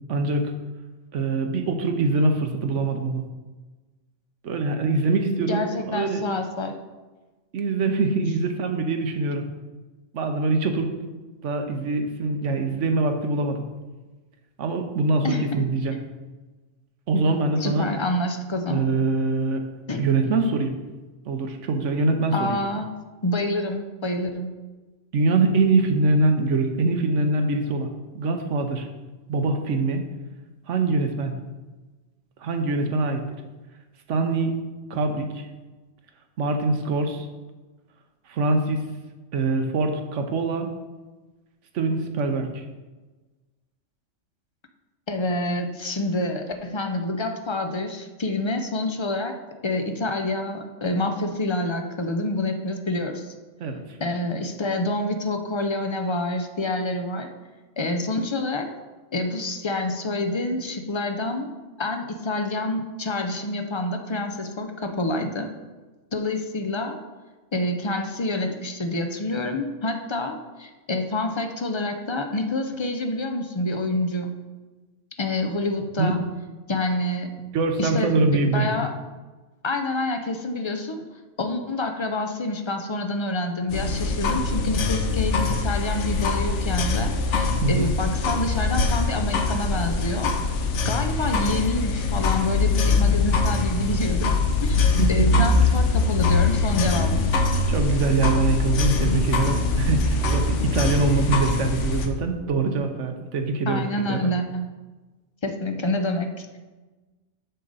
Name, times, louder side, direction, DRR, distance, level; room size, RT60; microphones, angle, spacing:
voice 1, 0.1-0.5 1.1-3.2 4.4-6.2 7.5-9.5 10.1-10.9 11.4-13.6 14.6-16.0 17.1-17.9 18.7-19.7 20.0-20.7 21.2-22.6 25.1-27.9 28.1-28.9 29.3-30.0 30.7-31.3 32.4-33.2 34.1-34.6 34.9-35.5 36.4-37.3 38.3-38.8 39.3-40.7 41.7-42.6 53.6-53.8 76.0-76.2 77.5-78.7 87.6-87.9 95.0-95.5 97.7-104.2, right 3 dB, 75° right, 5 dB, 1.1 m, -23 dB
voice 2, 5.5-6.8 15.2-15.6 17.6-18.9 19.9-20.3 22.3-22.9 23.2-24.5 45.1-53.3 54.0-57.3 57.8-58.7 59.1-61.5 61.8-65.5 66.1-67.0 67.5-74.4 75.2-76.2 76.7-77.3 77.8-78.9 79.6-81.0 81.4-90.3 90.8-94.3 94.6-97.3 103.7-104.7 105.4-106.6, left 2 dB, 40° left, 5 dB, 0.4 m, -27 dB
sound 1, 83.7-102.1, left 3 dB, 75° left, 1.0 m, -23 dB
6.5 x 6.5 x 4.0 m, 1.2 s
omnidirectional pair, 1.2 m